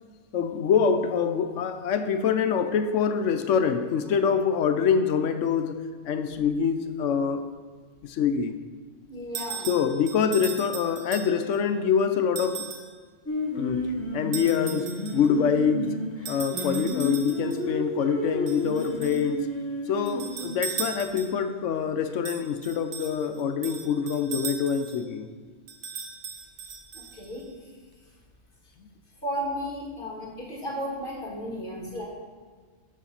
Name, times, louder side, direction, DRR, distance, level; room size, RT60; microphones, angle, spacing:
voice 1, 0.3-7.5 8.0-8.5 9.7-12.7 13.6-13.9 14.1-15.9 16.3-19.5 19.9-25.3 28.8-28.9, left 6 dB, 75° left, 8 dB, 0.9 m, -25 dB
voice 2, 9.1-9.8 26.9-27.5 29.2-32.1, equal, 40° left, -2 dB, 1.9 m, -34 dB
sound 1, 9.3-11.6 12.4-12.9 14.3-15.3 16.2-17.6 18.5-19.3 20.1-21.5 22.2-25.0 25.7-27.4, right 6 dB, 80° right, 1.2 m, -38 dB
Singing, 13.3-20.5, left 1 dB, 10° left, 1.3 m, -32 dB
7.5 x 6.4 x 5.6 m, 1.5 s
omnidirectional pair, 1.3 m